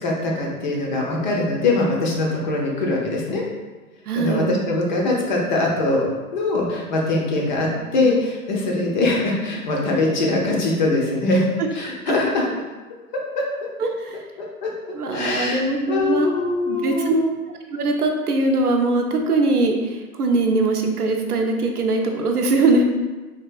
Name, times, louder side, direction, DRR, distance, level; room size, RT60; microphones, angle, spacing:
voice 1, 0.0-3.4 4.2-6.1 6.3-12.5 13.4-13.5 14.4-14.7 15.1-17.3, left 2 dB, 35° left, -2 dB, 0.5 m, -22 dB
voice 2, 4.1-4.5 7.7-7.8 12.1-12.2 13.8-14.2 14.9-16.3 16.7-17.1 17.7-22.8, right 3 dB, 85° right, 3 dB, 0.6 m, -21 dB
3.4 x 2.4 x 2.3 m, 1.3 s
figure-of-eight pair, 115°, 44 cm